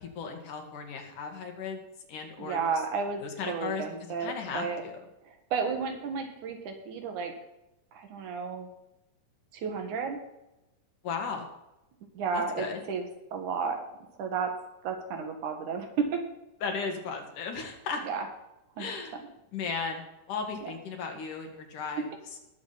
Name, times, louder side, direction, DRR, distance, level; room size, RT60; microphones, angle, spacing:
voice 1, 0.0-1.8 2.1-2.6 3.2-3.8 4.2-4.9 11.0-11.5 12.3-12.8 16.6-18.0 18.8-19.2 19.5-20.0 20.3-22.1, left 5 dB, 70° left, 3 dB, 3.3 m, -35 dB
voice 2, 2.4-3.2 3.5-4.8 5.5-7.3 7.9-8.7 9.5-10.2 12.1-13.1 13.3-13.8 14.2-14.5 14.8-16.2 18.0-18.3 18.8-18.9, right 5 dB, 65° right, 5 dB, 3.1 m, -32 dB
19.5 x 7.3 x 4.2 m, 0.93 s
omnidirectional pair, 3.8 m